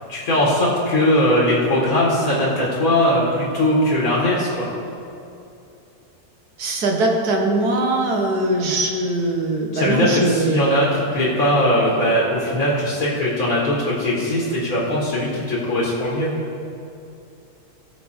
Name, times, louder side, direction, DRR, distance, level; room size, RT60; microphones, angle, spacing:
voice 1, 0.1-4.7 9.7-16.3, left 1 dB, 60° left, -5 dB, 2.0 m, -20 dB
voice 2, 6.6-10.6 11.9-12.0, right 2 dB, 70° right, 1 dB, 1.7 m, -21 dB
17.0 x 5.7 x 4.3 m, 2.6 s
omnidirectional pair, 1.7 m